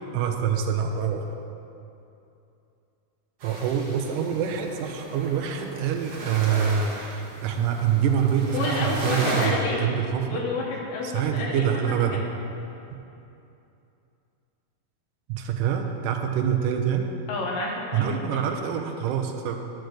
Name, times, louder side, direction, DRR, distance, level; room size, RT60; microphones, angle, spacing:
voice 1, 0.1-1.3 3.4-10.5 11.0-12.2 12.9-13.0 15.3-17.1 17.9-19.6, right 8 dB, 75° right, 3 dB, 2.1 m, -25 dB
sound 1, 3.4-9.5, right 1 dB, 50° right, 1.9 m, -35 dB
voice 2, 8.5-9.8 10.3-12.2 17.3-18.4, left 3 dB, 70° left, -1 dB, 2.9 m, -30 dB
10.5 x 6.4 x 6.5 m, 2.7 s
omnidirectional pair, 4.3 m